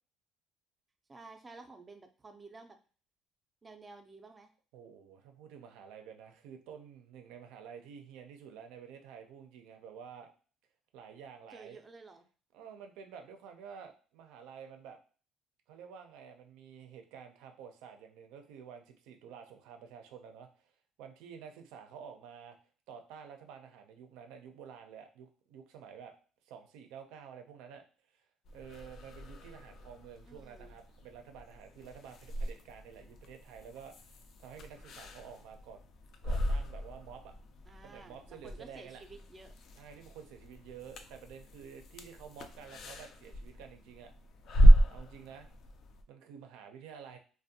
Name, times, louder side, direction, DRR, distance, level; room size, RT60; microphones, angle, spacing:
voice 1, 1.1-2.8 3.6-4.5 11.5-12.2 30.3-30.8 37.7-39.5, right 3 dB, 25° right, 6 dB, 0.4 m, -52 dB
voice 2, 4.7-10.3 10.9-11.8 12.5-15.0 15.7-20.7 21.0-22.6 22.9-26.1 26.5-27.8 28.1-28.2 28.5-35.8 36.2-37.3 37.8-39.0 39.8-44.1 44.9-45.5 46.1-47.2, right 7 dB, 90° right, 6 dB, 0.4 m, -50 dB
sound 1, 28.5-46.0, right 1 dB, 60° left, 0.4 m, -32 dB
2.5 x 2.1 x 2.7 m, 0.39 s
cardioid pair, 110°, 0 cm